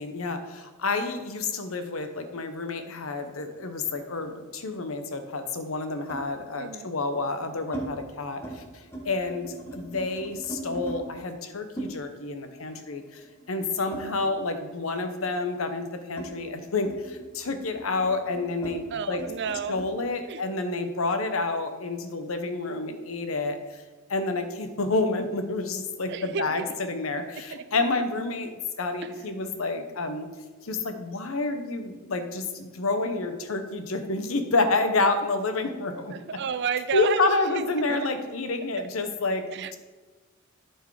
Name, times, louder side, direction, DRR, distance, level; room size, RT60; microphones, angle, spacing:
voice 1, 0.0-8.6 9.0-13.2 13.5-19.2 19.7-23.8 24.1-28.5 28.8-30.3 30.6-36.1 36.9-39.8, left 3 dB, 75° left, 8 dB, 0.9 m, -29 dB
sound 1, 3.2-4.8 6.1-6.3 7.1-7.9 8.2-8.6 8.8-11.0 11.8-14.6 14.9-19.9, right 2 dB, 10° left, 1.5 m, -41 dB
voice 2, 6.6-6.9 13.9-14.4 18.9-19.9 20.3-20.4 26.1-26.7 27.3-27.6 29.0-29.1 36.1-38.0 38.8-38.9 39.5-39.8, right 6 dB, 55° right, 13 dB, 0.4 m, -32 dB
11.5 x 4.6 x 4.8 m, 1.3 s
head